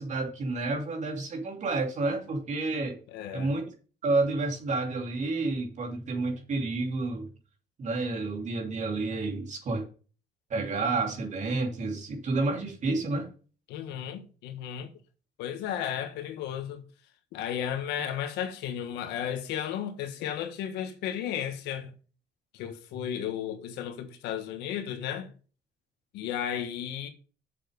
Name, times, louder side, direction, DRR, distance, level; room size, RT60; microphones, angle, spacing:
voice 1, 0.0-3.0 3.3-3.7 4.0-7.3 7.8-9.8 10.5-13.3, right 3 dB, 45° right, 2.9 m, -30 dB
voice 2, 3.1-3.5 13.7-14.9 15.4-16.8 17.3-21.9 22.5-25.3 26.1-27.1, left 9 dB, 90° left, 1.4 m, -34 dB
7.5 x 6.9 x 5.2 m
cardioid pair, 110°, 17 cm